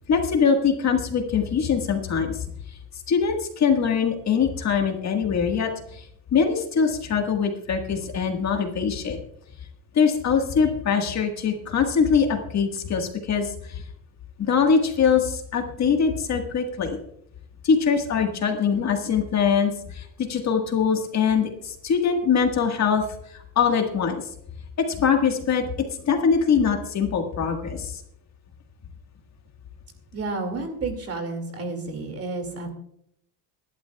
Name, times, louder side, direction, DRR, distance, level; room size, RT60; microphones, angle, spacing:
voice 1, 0.1-2.4 3.1-6.0 6.3-9.2 9.9-13.8 14.4-17.0 17.6-23.0 23.5-24.2 24.8-25.6 26.0-28.0, left 6 dB, 35° left, 4 dB, 1.6 m, -23 dB
voice 2, 30.1-32.7, right 3 dB, 30° right, 5 dB, 2.3 m, -31 dB
22.0 x 11.5 x 2.3 m, 0.72 s
cardioid pair, 140°, 46 cm